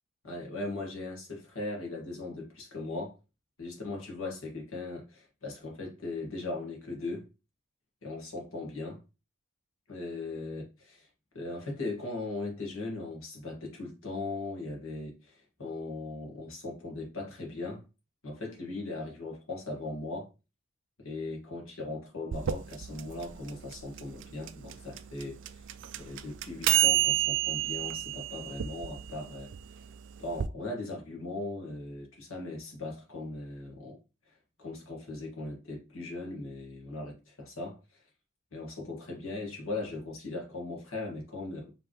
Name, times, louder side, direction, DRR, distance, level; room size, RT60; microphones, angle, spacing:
voice 1, 0.2-3.2 3.6-7.3 8.0-9.0 9.9-11.1 11.3-17.8 18.2-20.3 21.0-25.7 26.0-29.8 30.2-34.0 34.3-38.0 38.5-41.7, left 2 dB, 65° left, 1.8 m, -39 dB
sound 1, 22.3-30.5, right 14 dB, 55° right, 0.3 m, -30 dB
5.1 x 3.3 x 3.1 m
head